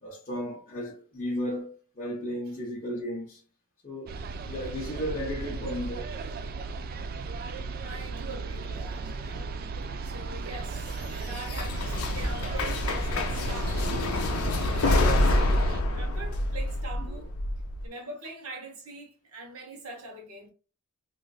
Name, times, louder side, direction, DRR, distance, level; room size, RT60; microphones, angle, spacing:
voice 1, 0.0-3.4 3.8-4.1 4.4-6.1 17.0-17.3, equal, 35° left, 0.8 m, -34 dB
sound 1, 4.1-15.8, right 4 dB, 45° right, 0.3 m, -36 dB
voice 2, 7.8-9.6 10.0-14.2 14.7-17.3 17.8-20.5, right 3 dB, 75° right, 1.1 m, -42 dB
sound 2, 10.5-17.8, left 2 dB, 80° left, 0.6 m, -27 dB
3.2 x 2.6 x 2.3 m
head